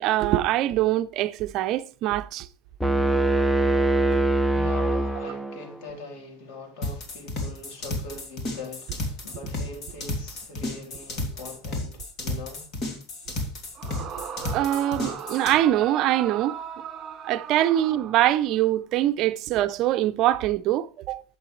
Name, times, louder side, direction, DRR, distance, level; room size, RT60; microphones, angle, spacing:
voice 1, 0.0-2.5 4.1-4.2 14.2-14.3 14.5-16.6 17.2-21.2, right 13 dB, 50° right, 0.6 m, -23 dB
sound 1, 2.8-5.8, right 2 dB, ahead, 0.5 m, -23 dB
voice 2, 4.3-12.7, left 2 dB, 65° left, 3.7 m, -42 dB
sound 2, 6.8-15.5, left 2 dB, 40° left, 2.8 m, -32 dB
Yell / Screaming, 13.7-18.7, right 7 dB, 30° right, 2.1 m, -37 dB
11.5 x 7.8 x 3.2 m
supercardioid pair, 140°, 0 cm